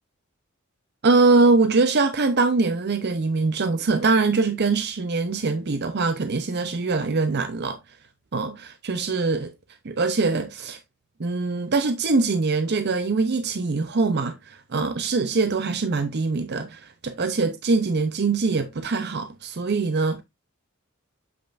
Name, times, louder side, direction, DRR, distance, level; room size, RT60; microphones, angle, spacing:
voice 1, 1.0-8.0 8.3-9.5 9.8-10.8 11.2-20.2, right 3 dB, 55° right, 0.7 m, -23 dB
8.1 x 5.4 x 2.5 m
head